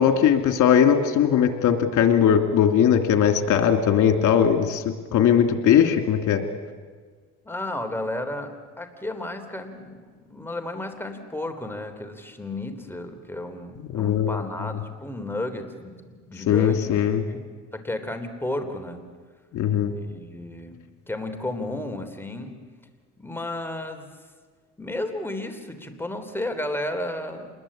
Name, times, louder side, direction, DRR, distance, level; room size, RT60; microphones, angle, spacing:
voice 1, 0.0-4.8 5.1-6.4 13.9-14.4 16.5-17.2 19.5-19.9, left 8 dB, 80° left, 6 dB, 2.7 m, -19 dB
voice 2, 7.4-16.9 17.3-17.5 17.7-19.0 19.9-20.8 21.1-22.5 23.2-24.1 24.8-27.5, left 1 dB, 5° left, 6 dB, 3.3 m, -33 dB
27.5 x 21.0 x 8.7 m, 1.5 s
cardioid pair, 90°, 30 cm